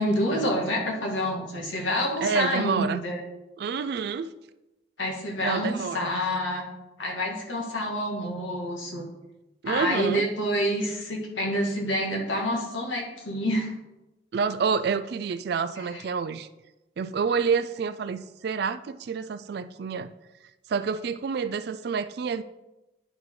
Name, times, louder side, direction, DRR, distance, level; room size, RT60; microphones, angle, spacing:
voice 1, 0.0-3.2 5.0-6.7 7.0-9.1 9.6-13.7 15.8-16.0, equal, 85° left, -1 dB, 2.0 m, -28 dB
voice 2, 2.2-3.0 3.6-4.3 5.4-6.2 9.6-10.3 14.3-16.5 17.0-20.1 20.7-22.4, right 5 dB, 55° right, 13 dB, 0.3 m, -28 dB
10.0 x 4.7 x 3.9 m, 0.99 s
head